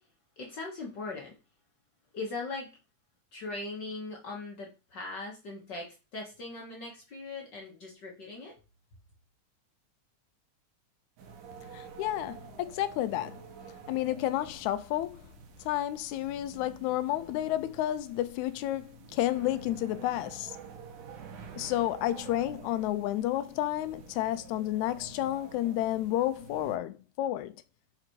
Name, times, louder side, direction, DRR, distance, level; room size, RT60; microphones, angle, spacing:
voice 1, 0.4-1.3 2.1-2.7 3.3-8.5, left 3 dB, 55° left, 1.3 m, -40 dB
sound 1, 11.2-26.8, right 6 dB, 85° right, 2.5 m, -49 dB
voice 2, 11.7-13.4 13.9-15.2 15.7-20.6 21.5-27.5, left 13 dB, 80° left, 1.8 m, -31 dB
5.9 x 3.9 x 4.5 m
omnidirectional pair, 3.6 m